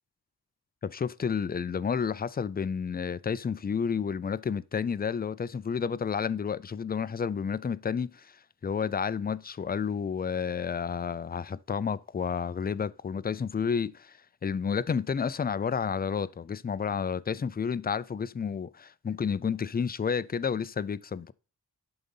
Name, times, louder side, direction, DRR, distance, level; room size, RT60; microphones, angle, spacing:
voice 1, 0.8-14.2 14.4-21.3, left 6 dB, 25° left, 0.3 m, -31 dB
11.0 x 3.9 x 5.4 m
wide cardioid pair, 105°, 40 cm